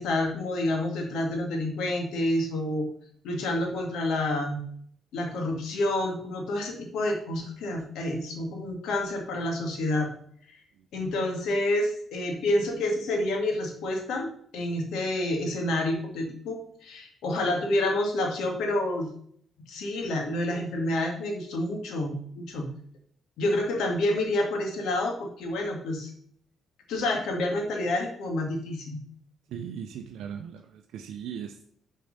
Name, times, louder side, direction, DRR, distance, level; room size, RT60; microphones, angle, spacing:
voice 1, 0.0-2.9 3.2-4.6 5.1-10.1 10.9-19.1 19.7-22.7 23.4-26.1 26.9-29.0, left 1 dB, 80° left, 2 dB, 2.1 m, -28 dB
voice 2, 29.5-31.6, right 8 dB, 80° right, 5 dB, 0.6 m, -38 dB
6.8 x 4.5 x 6.6 m, 0.63 s
cardioid pair, 90°, 0 cm